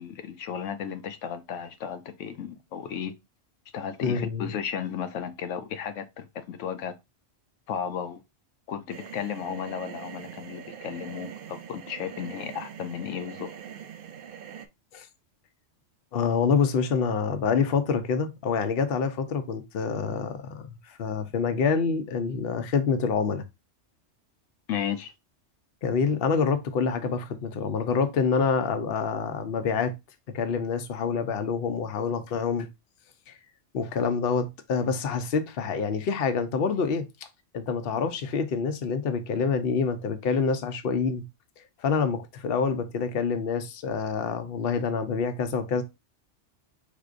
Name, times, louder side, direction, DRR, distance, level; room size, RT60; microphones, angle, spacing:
voice 1, 0.0-3.1 3.7-6.9 7.7-8.2 8.7-13.5 24.7-25.1, left 8 dB, 90° left, 1.0 m, -34 dB
voice 2, 4.0-4.5 14.9-15.1 16.1-23.4 25.8-29.9 30.3-32.7 33.3-33.4 33.7-37.0 37.5-41.2 41.8-45.8, left 5 dB, 55° left, 0.9 m, -26 dB
sound 1, 8.9-14.7, right 8 dB, 60° right, 0.6 m, -43 dB
5.0 x 3.7 x 2.5 m
omnidirectional pair, 1.2 m